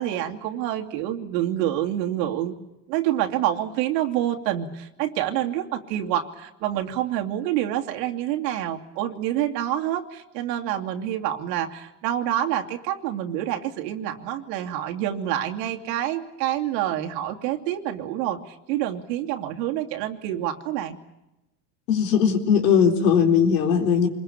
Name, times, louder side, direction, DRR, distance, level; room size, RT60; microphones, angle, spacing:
voice 1, 0.0-2.5 2.9-21.0, right 12 dB, 75° right, 4 dB, 2.7 m, -27 dB
voice 2, 21.9-24.1, left 7 dB, 85° left, 6 dB, 3.9 m, -19 dB
26.5 x 21.5 x 8.6 m, 0.94 s
supercardioid pair, 115°, 50 cm